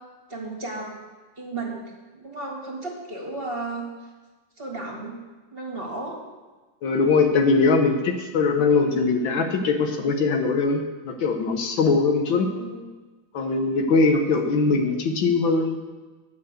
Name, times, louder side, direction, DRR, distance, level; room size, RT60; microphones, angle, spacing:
voice 1, 0.3-1.0 1.4-4.1 4.6-5.2 5.5-6.2 12.2-12.8, right 2 dB, 30° right, -2 dB, 1.8 m, -34 dB
voice 2, 6.8-12.5 13.3-15.8, left 4 dB, 70° left, 4 dB, 1.7 m, -21 dB
11.5 x 5.7 x 8.0 m, 1.3 s
omnidirectional pair, 2.2 m